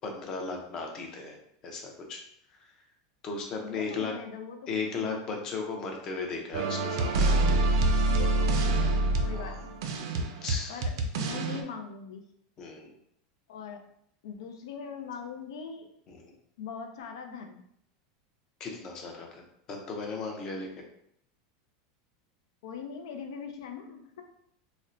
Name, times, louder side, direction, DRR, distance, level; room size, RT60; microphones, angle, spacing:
voice 1, 0.0-1.4 1.6-2.2 2.6-2.7 3.2-4.2 4.7-7.4 9.3-9.6 10.4-10.8 12.6-12.9 16.1-16.3 18.6-19.4 19.7-20.9, left 4 dB, 25° left, 2 dB, 0.5 m, -36 dB
voice 2, 3.6-5.2 8.1-9.8 10.7-12.2 13.5-13.8 14.2-15.9 16.6-17.6 22.6-24.2, left 6 dB, 85° left, 5 dB, 0.5 m, -41 dB
sound 1, 6.5-11.6, right 2 dB, 65° right, 0.4 m, -26 dB
4.1 x 2.1 x 2.5 m, 0.71 s
supercardioid pair, 170°, 2 cm